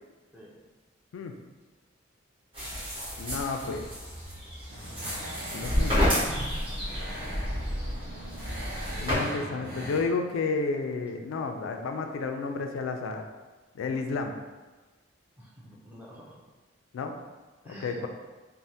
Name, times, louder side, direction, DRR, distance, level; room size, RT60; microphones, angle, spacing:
sound 1, 2.5-9.2, equal, 25° right, 1.0 m, -30 dB
voice 1, 3.2-3.9 5.5-5.9 9.0-13.2 13.7-14.4 16.9-17.2 17.8-18.1, left 4 dB, 80° left, 5 dB, 0.3 m, -31 dB
sound 2, 4.7-10.0, equal, 50° right, 0.6 m, -40 dB
voice 2, 15.4-16.4 17.6-18.1, equal, 10° right, -5 dB, 0.4 m, -48 dB
3.2 x 2.1 x 2.7 m, 1.3 s
head